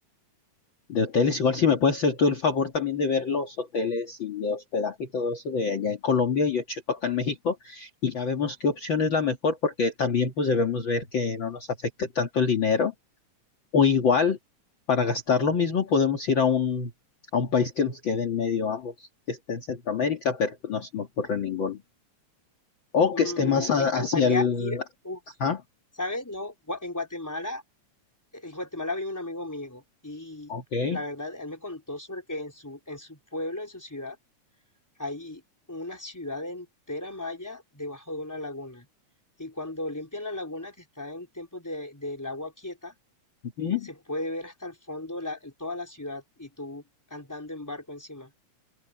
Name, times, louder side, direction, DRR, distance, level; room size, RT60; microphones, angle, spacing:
voice 1, 0.9-12.9 13.7-14.4 14.9-16.9 17.3-21.8 22.9-24.8 25.4-25.6 30.5-31.0 43.6-43.9, left 5 dB, 45° left, 2.4 m, -25 dB
voice 2, 23.1-24.8 25.0-25.2 26.0-27.6 28.3-30.5 30.9-34.2 35.0-35.4 35.7-38.9 39.4-42.9 43.8-46.8 47.1-48.3, left 2 dB, 5° left, 4.0 m, -35 dB
open air
omnidirectional pair, 3.3 m